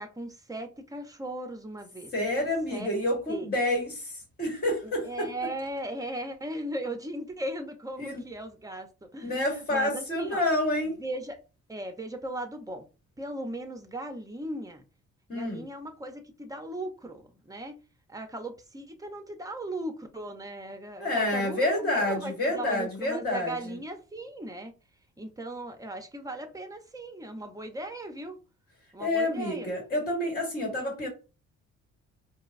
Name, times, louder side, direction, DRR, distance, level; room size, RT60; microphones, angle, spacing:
voice 1, 0.0-2.1 2.7-2.9 3.3-3.5 4.8-9.3 9.7-10.4 10.9-11.4 11.7-12.9 13.2-14.8 15.3-17.8 18.1-24.7 25.2-28.4 28.9-29.7, right 1 dB, 10° right, 0.7 m, -37 dB
voice 2, 2.1-5.3 8.0-8.2 9.2-11.0 15.3-15.6 21.0-23.5 29.0-31.1, left 1 dB, 30° left, 1.3 m, -28 dB
4.5 x 2.0 x 2.5 m
cardioid pair, 90°, 30 cm